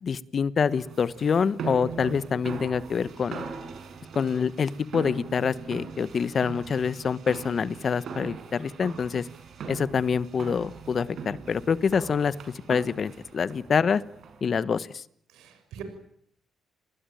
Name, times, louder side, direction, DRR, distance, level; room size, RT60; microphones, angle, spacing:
voice 1, 0.0-3.4 4.1-9.3 9.7-12.3 12.7-14.0 14.4-15.0, left 6 dB, 45° left, 16 dB, 1.2 m, -26 dB
sound 1, 0.7-14.6, right 6 dB, 65° right, 6.1 m, -41 dB
voice 2, 15.3-15.8, right 8 dB, 90° right, 8 dB, 6.1 m, -41 dB
29.5 x 20.0 x 9.2 m, 0.69 s
cardioid pair, 90°, 0 cm